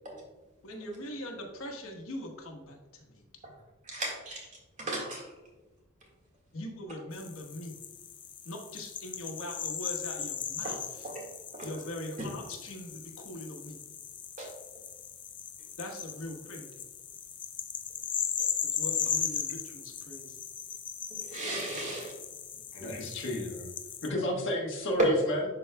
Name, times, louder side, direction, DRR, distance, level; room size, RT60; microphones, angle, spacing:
voice 1, 0.6-3.2 6.5-7.7 8.4-11.1 11.6-13.8 15.8-16.8 18.6-20.4 22.5-22.6 24.1-24.4, left 1 dB, 85° left, 2 dB, 1.2 m, -42 dB
voice 2, 3.9-4.4 4.8-5.2 10.6-10.7 11.0-11.2 11.5-11.7 14.4-14.5 21.3-22.1, right 1 dB, 35° right, -2 dB, 1.8 m, -36 dB
sound 1, 7.1-24.1, left 8 dB, 25° left, 0.3 m, -38 dB
voice 3, 22.7-23.7 24.0-25.5, left 1 dB, 65° left, -1 dB, 1.3 m, -32 dB
11.5 x 3.9 x 2.2 m, 1.2 s
head